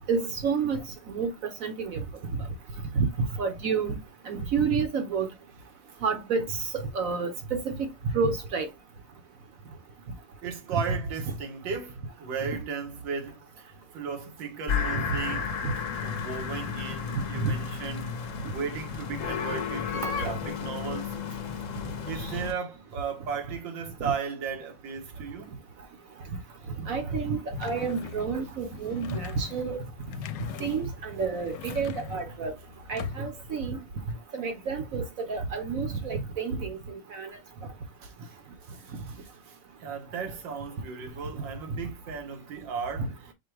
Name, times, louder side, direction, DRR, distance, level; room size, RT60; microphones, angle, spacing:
voice 1, 0.1-0.8 1.1-1.3 1.6-2.0 3.0-3.1 3.4-4.0 4.3-5.3 6.0-8.7 14.9-15.0 17.4-17.5 20.0-20.1 24.0-24.1 26.8-29.8 30.6-32.5 32.9-33.8 34.3-36.8 37.1-37.3 43.0-43.1, right 5 dB, 55° right, 1.0 m, -29 dB
voice 2, 10.4-15.6 16.0-18.1 18.4-21.2 22.1-25.5 28.7-28.8 30.5-30.6 38.0-43.3, right 6 dB, 85° right, 1.8 m, -36 dB
sound 1, 14.7-22.5, left 6 dB, 55° left, 0.9 m, -33 dB
sound 2, 27.5-33.5, left 7 dB, 75° left, 1.2 m, -41 dB
4.9 x 2.2 x 4.6 m
omnidirectional pair, 2.0 m